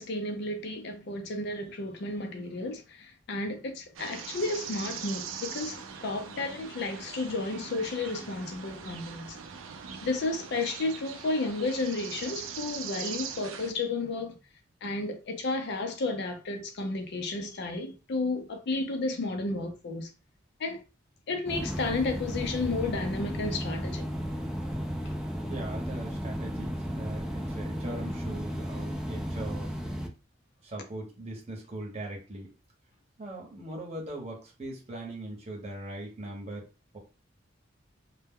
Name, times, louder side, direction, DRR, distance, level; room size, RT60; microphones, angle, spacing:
voice 1, 0.0-9.4 10.0-14.4 14.8-20.1 20.6-20.8 21.3-24.1, left 2 dB, 60° left, 0.4 m, -32 dB
sound 1, 4.0-13.7, right 7 dB, 85° right, 0.4 m, -41 dB
sound 2, 21.5-30.1, equal, ahead, 0.3 m, -34 dB
voice 2, 25.5-29.7 30.6-32.5 33.2-36.6 36.9-37.0, right 1 dB, 35° right, 0.9 m, -40 dB
2.1 x 2.0 x 3.5 m
head